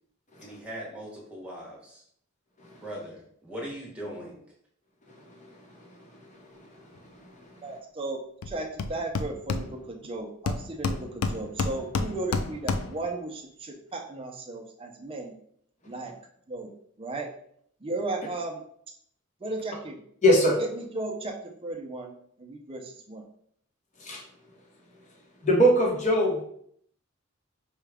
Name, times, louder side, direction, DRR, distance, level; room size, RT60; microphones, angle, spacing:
voice 1, 0.4-2.0 2.7-4.4, equal, 5° right, -4 dB, 1.1 m, -40 dB
voice 2, 7.6-8.2 8.5-15.3 15.9-16.1 16.5-16.7 17.0-17.3 17.8-18.6 19.4-20.0 20.6-21.3 21.6-22.1 22.4-23.2, right 2 dB, 25° right, 1 dB, 0.5 m, -35 dB
Hammer, 8.4-8.5 8.8-10.1 10.5-13.1, left 4 dB, 90° left, 0.4 m, -30 dB
voice 3, 20.2-20.6 24.0-24.2 25.4-26.4, equal, 35° left, -1 dB, 0.9 m, -21 dB
4.6 x 2.3 x 3.4 m, 0.66 s
head